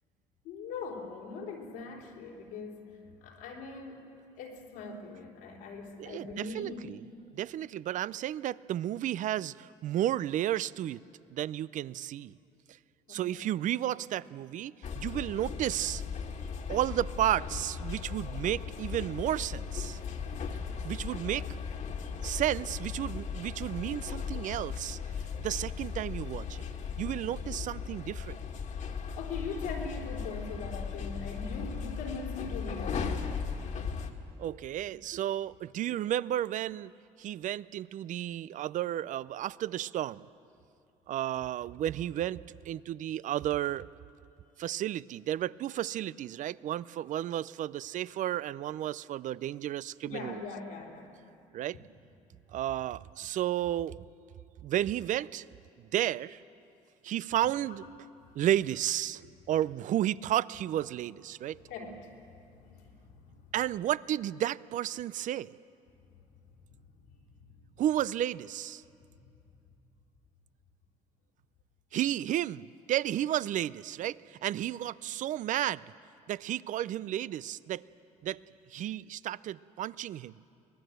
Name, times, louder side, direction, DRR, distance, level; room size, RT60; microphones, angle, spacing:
voice 1, 0.4-6.9 13.1-13.5 29.1-33.4 50.0-51.1 57.7-58.0 58.2-58.3 61.7-62.2 62.5-63.4 66.9-67.0 67.4-67.6 69.1-69.3, left 4 dB, 90° left, -1 dB, 3.6 m, -42 dB
voice 2, 6.0-7.0 7.3-11.0 11.3-12.3 13.1-16.0 16.7-20.0 20.8-21.5 22.2-25.0 25.4-26.6 27.0-28.4 34.4-36.9 37.2-40.2 41.1-43.9 44.6-50.4 51.5-51.8 52.5-54.1 54.6-55.4 55.8-56.4 57.0-57.8 58.3-61.6 63.5-65.5 67.8-68.8 71.9-75.8 76.3-77.8 78.2-78.4 78.7-80.4, right 12 dB, 60° right, 20 dB, 0.5 m, -32 dB
sound 1, 14.8-34.1, left 6 dB, 55° left, 2.0 m, -37 dB
23.5 x 19.5 x 7.9 m, 2.6 s
supercardioid pair, 70°, 15 cm